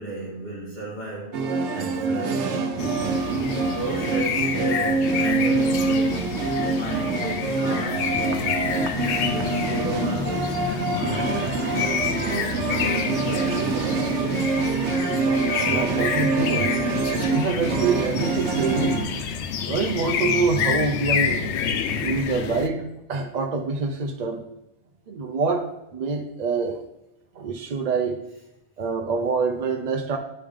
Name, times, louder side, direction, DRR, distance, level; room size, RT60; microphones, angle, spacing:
voice 1, 0.0-2.8 3.6-8.9 9.3-11.8 12.6-14.7, right 1 dB, 40° left, 1.3 m, -34 dB
sound 1, 1.3-19.2, right 3 dB, 85° right, 1.0 m, -25 dB
sound 2, 2.8-22.7, left 7 dB, 75° left, 0.8 m, -29 dB
voice 2, 15.3-16.8 17.3-19.0 19.7-21.4 22.0-24.4 25.1-26.8 27.3-28.2 28.8-30.2, right 4 dB, 55° right, 0.5 m, -26 dB
9.0 x 3.4 x 3.6 m
omnidirectional pair, 1.2 m